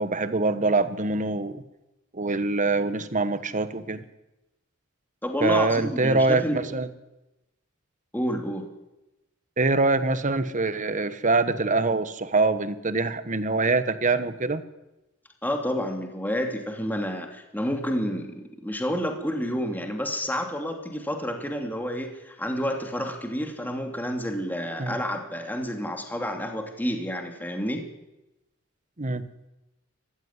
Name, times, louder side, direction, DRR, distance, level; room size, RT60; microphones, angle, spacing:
voice 1, 0.0-1.6 2.1-4.0 5.4-6.9 9.6-14.6 24.8-25.0 29.0-29.3, right 3 dB, 40° right, 11 dB, 1.4 m, -24 dB
voice 2, 5.2-6.6 8.1-8.7 15.4-27.8, equal, 10° left, 3 dB, 2.8 m, -29 dB
23.0 x 15.5 x 9.8 m, 0.98 s
head